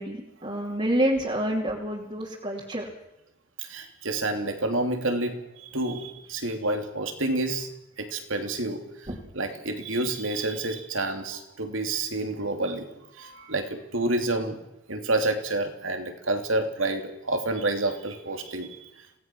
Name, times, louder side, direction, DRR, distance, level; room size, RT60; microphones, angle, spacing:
voice 1, 0.0-2.9 9.1-9.2, right 1 dB, 30° right, -4 dB, 2.7 m, -28 dB
voice 2, 3.6-7.7 8.0-8.8 9.3-14.6 14.9-18.8, right 2 dB, 90° right, 5 dB, 3.0 m, -29 dB
26.5 x 18.0 x 6.2 m, 0.85 s
head